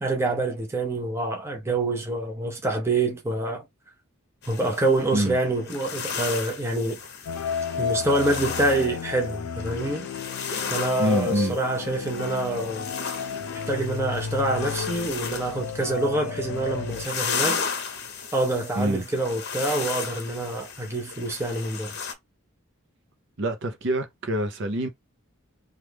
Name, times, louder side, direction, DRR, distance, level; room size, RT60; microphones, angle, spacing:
voice 1, 0.0-3.7 4.5-7.0 7.8-10.1 10.7-12.9 13.7-17.6 18.3-21.9, right 2 dB, 10° right, 0.6 m, -26 dB
sound 1, 4.4-22.1, left 6 dB, 50° left, 0.7 m, -35 dB
sound 2, 7.3-17.1, left 7 dB, 85° left, 0.4 m, -32 dB
voice 2, 11.0-11.6 18.8-19.0 23.4-24.9, right 1 dB, 55° right, 0.7 m, -26 dB
3.1 x 2.4 x 3.3 m
head